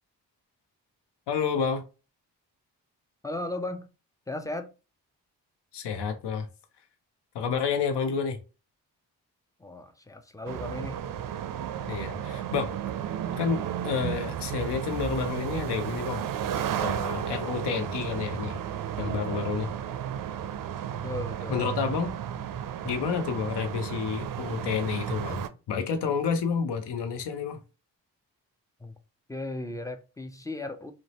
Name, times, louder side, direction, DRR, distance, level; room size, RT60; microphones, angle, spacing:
voice 1, 1.3-1.8 5.7-6.5 7.3-8.4 11.9-12.7 13.4-16.3 16.8-18.6 19.0-19.7 21.5-22.1 22.8-25.4 25.7-27.6, left 6 dB, 70° left, 0.7 m, -29 dB
voice 2, 3.2-3.9 4.3-4.7 9.6-11.0 21.0-21.7 28.8-28.9 29.3-30.9, left 2 dB, 10° left, 0.4 m, -36 dB
sound 1, 10.5-25.5, right 9 dB, 50° right, 0.4 m, -33 dB
2.6 x 2.1 x 2.9 m
supercardioid pair, 40°, 43 cm